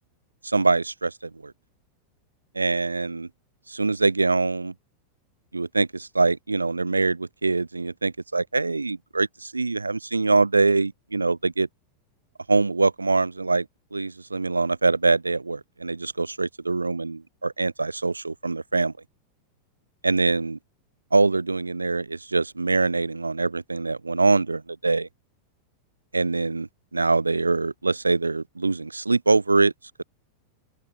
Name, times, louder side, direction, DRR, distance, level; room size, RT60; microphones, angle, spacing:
voice 1, 0.4-1.5 2.5-3.3 3.7-4.7 5.5-11.7 12.5-13.7 13.9-18.9 20.0-20.6 21.1-25.1 26.1-29.7, right 3 dB, 80° right, 1.0 m, -24 dB
open air
figure-of-eight pair, 90°, 0 cm